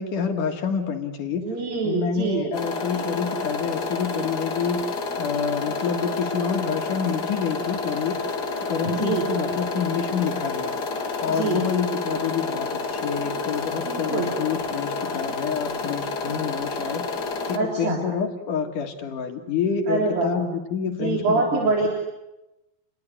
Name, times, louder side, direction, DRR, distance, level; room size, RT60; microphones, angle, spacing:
voice 1, 0.0-1.5 1.8-8.2 8.7-10.7 11.2-17.2 17.5-21.9, left 6 dB, 65° left, 5 dB, 3.2 m, -28 dB
voice 2, 1.3-2.5 8.8-9.3 11.3-11.6 13.9-14.3 17.5-18.0 19.9-20.4 20.9-21.9, right 3 dB, 80° right, -1 dB, 5.5 m, -25 dB
sound 1, 2.5-17.6, left 4 dB, 35° left, 2.0 m, -29 dB
30.0 x 20.5 x 9.7 m, 0.97 s
omnidirectional pair, 4.1 m